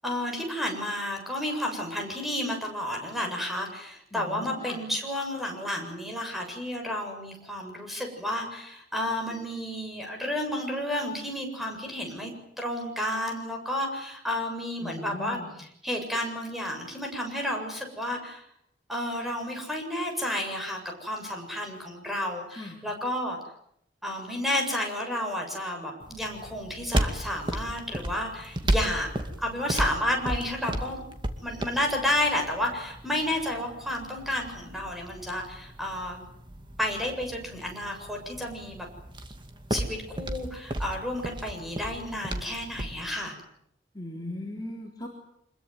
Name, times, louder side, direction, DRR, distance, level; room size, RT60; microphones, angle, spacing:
voice 1, 0.0-12.3 12.6-18.4 18.9-23.4 24.0-29.1 29.4-31.0 31.4-36.2 36.8-38.9 39.7-43.4, left 1 dB, ahead, 2 dB, 7.6 m, -31 dB
voice 2, 4.1-4.8 14.8-15.5 22.5-22.8 43.9-45.1, left 1 dB, 25° left, -1 dB, 3.9 m, -38 dB
sound 1, 26.0-43.0, right 1 dB, 25° right, 2.4 m, -34 dB
26.0 x 22.0 x 9.4 m, 0.73 s
head